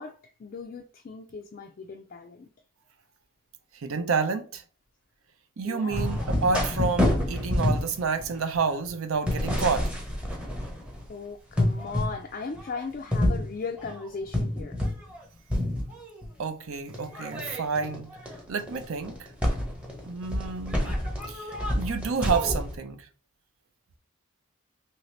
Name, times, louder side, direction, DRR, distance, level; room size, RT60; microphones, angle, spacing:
voice 1, 0.0-2.5 5.6-6.2 11.1-14.8, left 4 dB, 40° left, 0.3 m, -38 dB
voice 2, 3.7-4.6 5.6-9.9 16.4-18.1 18.5-19.3 20.0-21.0 21.3-23.1, right 5 dB, 75° right, 0.5 m, -29 dB
sound 1, 5.9-11.1 11.5-12.2 12.5-15.2 15.5-16.3 16.9-22.8, left 1 dB, 5° right, 0.7 m, -28 dB
2.9 x 2.7 x 3.1 m
head